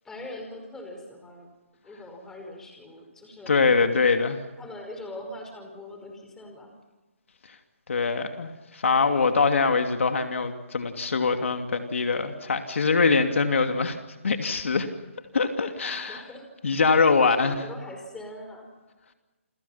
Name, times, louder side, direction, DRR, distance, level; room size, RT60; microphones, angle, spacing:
voice 1, 0.0-1.5 1.8-3.6 4.6-6.7 15.8-16.5 17.2-18.7, left 1 dB, 5° left, 3 dB, 5.4 m, -41 dB
voice 2, 3.5-4.4 7.9-14.0 14.2-14.9 15.3-16.2 16.6-17.6, left 4 dB, 70° left, 6 dB, 2.8 m, -23 dB
29.5 x 25.0 x 5.9 m, 1.1 s
hypercardioid pair, 155°, 7 cm